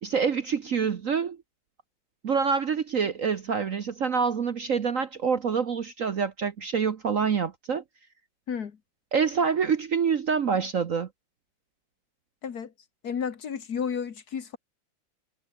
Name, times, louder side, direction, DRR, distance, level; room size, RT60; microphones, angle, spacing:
voice 1, 0.0-1.4 2.2-7.8 9.1-11.1, right 6 dB, 50° right, 1.1 m, -26 dB
voice 2, 8.5-8.8 12.4-12.7 13.0-14.6, left 7 dB, 50° left, 1.8 m, -32 dB
omnidirectional pair, 2.2 m